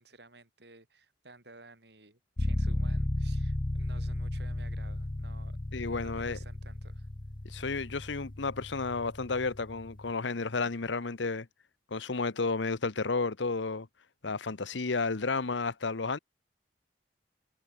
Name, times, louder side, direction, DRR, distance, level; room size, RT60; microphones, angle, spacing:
voice 1, 0.0-5.6 5.8-7.1, right 3 dB, 60° right, 7.4 m, -55 dB
sound 1, 2.4-10.1, left 1 dB, 25° left, 0.6 m, -34 dB
voice 2, 5.7-6.4 7.4-11.5 11.9-13.9 14.2-16.2, left 4 dB, 80° left, 1.0 m, -32 dB
head